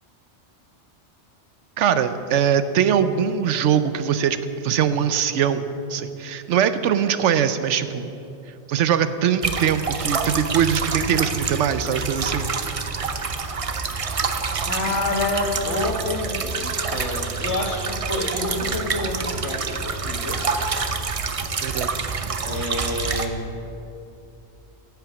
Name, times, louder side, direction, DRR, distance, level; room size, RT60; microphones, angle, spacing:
voice 1, 1.8-4.4 4.6-8.1 8.7-12.5 21.6-22.0, right 8 dB, 85° right, 12 dB, 1.0 m, -22 dB
sound 1, 9.4-23.3, right 5 dB, 35° right, 0.6 m, -27 dB
voice 2, 14.7-20.4 22.4-23.5, left 2 dB, 80° left, 2 dB, 1.8 m, -28 dB
10.5 x 8.4 x 8.2 m, 2.8 s
omnidirectional pair, 1.2 m